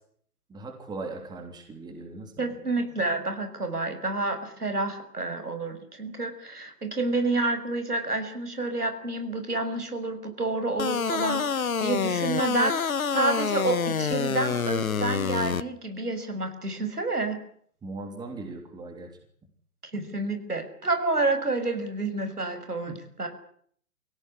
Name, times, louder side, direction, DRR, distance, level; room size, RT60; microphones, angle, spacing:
voice 1, 0.5-2.5 17.8-19.1 22.9-23.0, right 3 dB, 10° right, 5 dB, 3.3 m, -39 dB
voice 2, 2.4-17.4 19.9-23.3, right 2 dB, 80° right, 7 dB, 6.4 m, -29 dB
sound 1, 10.8-15.6, left 6 dB, 65° left, 1.4 m, -27 dB
25.0 x 17.0 x 9.9 m, 0.62 s
figure-of-eight pair, 125°, 45 cm